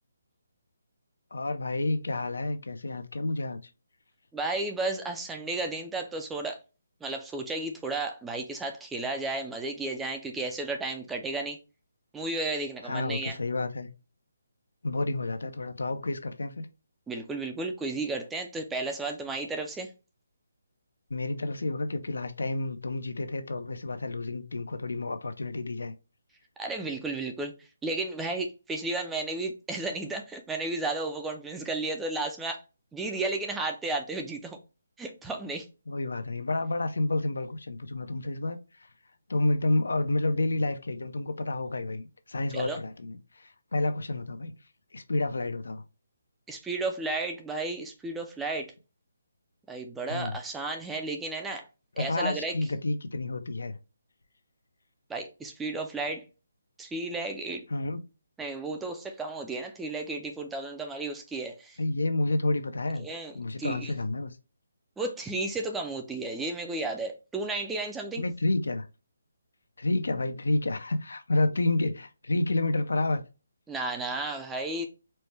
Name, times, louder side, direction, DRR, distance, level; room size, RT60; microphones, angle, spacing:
voice 1, 1.3-3.6 12.8-13.9 14.8-16.7 21.1-25.9 35.9-38.9 39.3-44.5 44.9-45.8 50.1-50.4 52.0-53.8 57.7-58.0 61.8-63.1 63.3-64.4 68.2-68.9 69.8-73.2, left 2 dB, 90° left, 0.6 m, -30 dB
voice 2, 4.3-6.6 7.0-11.6 12.1-13.4 17.1-19.9 26.6-27.5 27.8-32.6 32.9-34.6 35.0-35.7 42.5-42.8 46.5-48.7 49.7-51.7 52.0-52.6 55.1-56.2 56.8-57.6 58.4-61.8 63.0-63.3 63.6-63.9 65.0-68.2 73.7-74.9, right 2 dB, 5° right, 0.4 m, -33 dB
4.3 x 2.1 x 3.2 m
hypercardioid pair, 170°, 0 cm